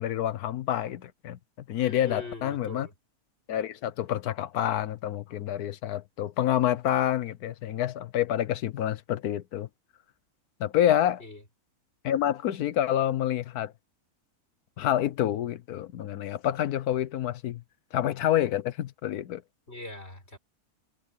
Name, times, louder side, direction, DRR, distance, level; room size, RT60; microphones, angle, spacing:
voice 1, 0.0-1.4 1.7-2.9 3.5-9.7 10.6-11.2 12.0-13.7 14.8-17.6 17.9-19.4, left 11 dB, 85° left, 1.3 m, -28 dB
voice 2, 1.8-2.9 11.2-11.4 19.7-20.4, left 2 dB, 40° left, 5.5 m, -41 dB
omnidirectional pair, 1.6 m